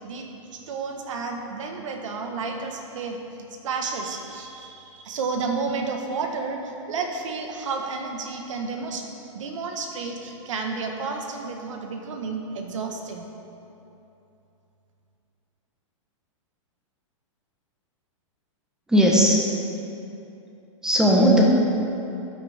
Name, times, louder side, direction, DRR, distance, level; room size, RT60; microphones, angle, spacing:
voice 1, 0.0-3.2 3.5-13.3, right 4 dB, 75° right, 3 dB, 1.6 m, -31 dB
voice 2, 18.9-19.4 20.8-21.5, equal, 5° right, -2 dB, 1.2 m, -17 dB
14.0 x 9.3 x 3.7 m, 2.8 s
hypercardioid pair, 160°, 16 cm